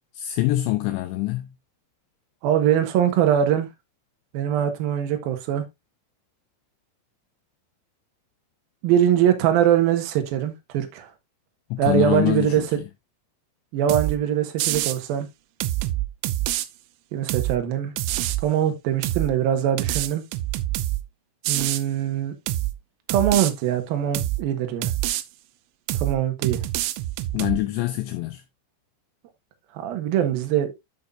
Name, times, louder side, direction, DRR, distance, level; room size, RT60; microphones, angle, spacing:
voice 1, 0.2-1.5 11.7-12.7 27.3-28.4, left 16 dB, 80° left, 2.8 m, -24 dB
voice 2, 2.4-3.7 4.3-5.6 8.8-11.1 11.8-12.6 13.7-15.3 17.1-17.9 18.4-20.2 21.5-22.3 23.1-24.9 26.0-26.6 29.7-30.7, right 10 dB, 65° right, 2.6 m, -22 dB
sound 1, 13.9-14.2 14.6-15.0 15.6-16.7 17.3-17.6 18.0-18.4 19.0-19.3 19.8-21.0 21.4-21.8 22.5-22.7 23.1-23.5 24.1-24.4 24.8-25.2 25.9-26.2 26.4-27.6, right 15 dB, 80° right, 2.9 m, -26 dB
11.0 x 5.6 x 2.6 m
omnidirectional pair, 5.5 m